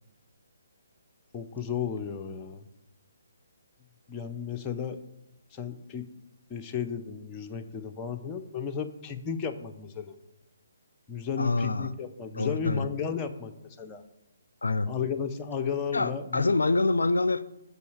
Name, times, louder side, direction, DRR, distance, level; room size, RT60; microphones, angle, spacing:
voice 1, 1.3-2.6 4.1-5.0 5.5-6.0 6.5-10.1 11.1-13.5 13.8-14.0 14.9-16.5, left 7 dB, 20° left, 4 dB, 0.7 m, -33 dB
voice 2, 11.4-11.9 12.3-12.9 14.6-14.9 15.9-17.4, left 3 dB, 75° left, 15 dB, 0.4 m, -26 dB
6.4 x 5.4 x 6.6 m, 0.88 s
figure-of-eight pair, 140°, 0 cm